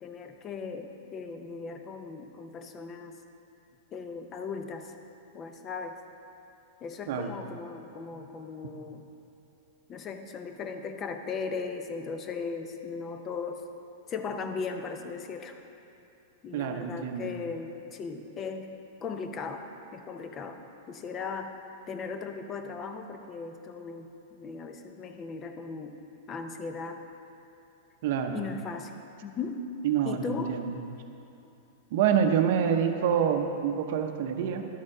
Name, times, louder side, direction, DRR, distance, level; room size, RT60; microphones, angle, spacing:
voice 1, 0.0-3.2 3.9-4.9 5.3-6.0 6.8-9.0 9.9-13.7 14.1-15.6 16.4-18.7 19.0-20.6 20.9-21.6 21.9-26.0 26.3-27.0 28.3-28.9 29.2-29.6 30.1-30.6, left 5 dB, 25° left, 6 dB, 0.6 m, -37 dB
voice 2, 16.5-17.3 28.0-28.5 29.8-30.7 31.9-34.6, right 8 dB, 60° right, 6 dB, 0.6 m, -27 dB
11.0 x 4.4 x 4.8 m, 2.8 s
supercardioid pair, 145°, 0 cm